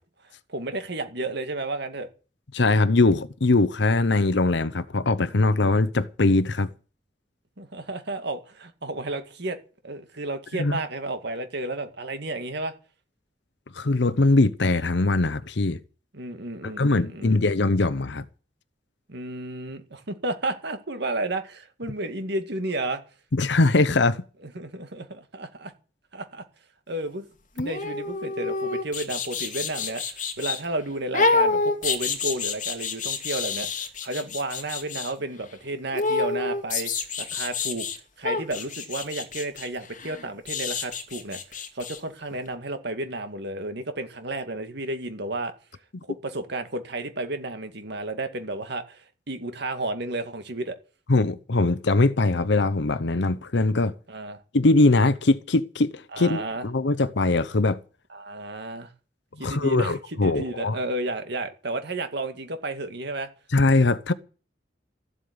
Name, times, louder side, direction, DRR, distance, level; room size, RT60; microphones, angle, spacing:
voice 1, 0.5-2.1 7.6-9.6 9.8-12.7 16.1-17.4 19.1-23.0 24.4-25.7 26.1-26.4 26.9-27.3 27.6-36.9 37.2-37.9 38.2-45.5 46.2-50.8 54.1-54.4 56.1-56.6 58.1-58.9 59.4-63.3, right 2 dB, 65° right, 2.1 m, -32 dB
voice 2, 2.5-6.7 10.6-10.8 13.7-15.8 16.6-18.2 23.3-24.2 51.1-53.9 54.5-57.8 59.4-60.8 63.5-64.1, left 2 dB, 70° left, 0.8 m, -21 dB
sound 1, 27.6-30.6 31.1-35.1 35.9-38.0 38.2-42.0 42.3-42.4, left 4 dB, 45° left, 2.5 m, -28 dB
14.0 x 8.2 x 9.5 m
head